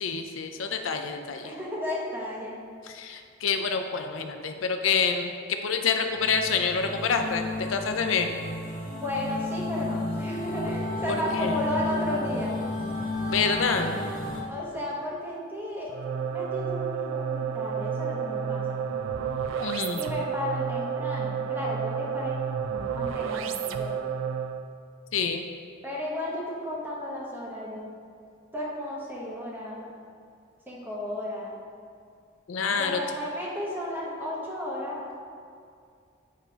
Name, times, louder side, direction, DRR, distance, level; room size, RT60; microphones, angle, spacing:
voice 1, 0.0-1.5 2.8-5.3 5.6-8.3 11.3-11.6 13.3-13.9 19.6-20.0 25.1-25.4 32.5-33.0, left 5 dB, 80° left, 5 dB, 0.5 m, -27 dB
voice 2, 1.4-2.6 8.9-12.6 14.5-15.9 16.3-18.9 20.0-22.4 22.9-23.9 25.8-27.9 28.5-29.9 30.6-31.6 32.8-35.0, left 1 dB, 10° right, -5 dB, 1.3 m, -33 dB
sound 1, 6.1-14.4, left 2 dB, 45° left, 1.1 m, -32 dB
sound 2, 15.9-24.7, right 7 dB, 85° right, 0.4 m, -31 dB
8.3 x 3.4 x 4.5 m, 2.3 s
head